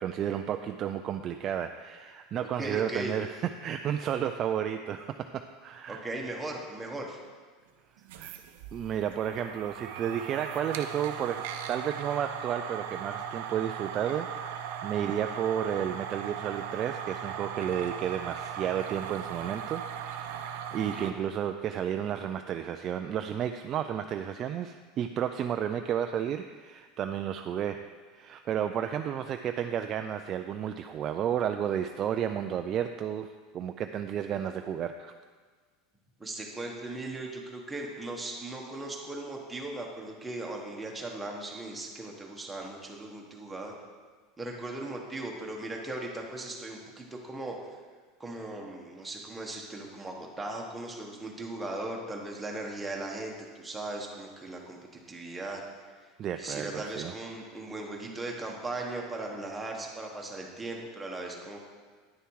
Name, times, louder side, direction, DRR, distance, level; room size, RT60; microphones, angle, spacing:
voice 1, 0.0-3.4 3.6-6.0 8.2-8.3 8.7-27.8 28.1-33.3 33.5-35.1 56.2-57.1, right 9 dB, 30° right, 7 dB, 0.3 m, -32 dB
voice 2, 2.6-3.4 5.9-7.2 20.9-21.1 36.2-43.7 44.4-47.6 48.2-55.6 56.4-61.6, right 2 dB, 10° right, -1 dB, 1.2 m, -38 dB
sound 1, 8.0-21.1, right 8 dB, 75° right, 0.6 m, -38 dB
9.9 x 6.7 x 4.7 m, 1.5 s
supercardioid pair, 155°, 0 cm